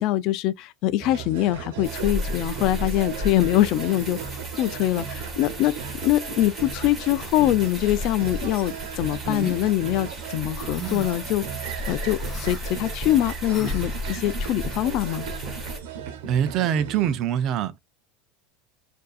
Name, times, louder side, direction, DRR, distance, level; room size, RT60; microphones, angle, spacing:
voice 1, 0.0-4.2 4.6-5.7 6.0-15.3, left 14 dB, 50° left, 0.4 m, -24 dB
sound 1, 1.0-17.2, right 8 dB, 75° right, 1.1 m, -36 dB
sound 2, 1.8-15.8, left 1 dB, 20° right, 1.9 m, -35 dB
sound 3, 9.2-9.6 10.7-11.2 12.2-12.6 13.5-13.9, right 1 dB, 20° left, 1.5 m, -34 dB
voice 2, 16.3-17.7, right 9 dB, 45° right, 0.6 m, -23 dB
6.6 x 2.7 x 2.4 m
supercardioid pair, 125°, 0 cm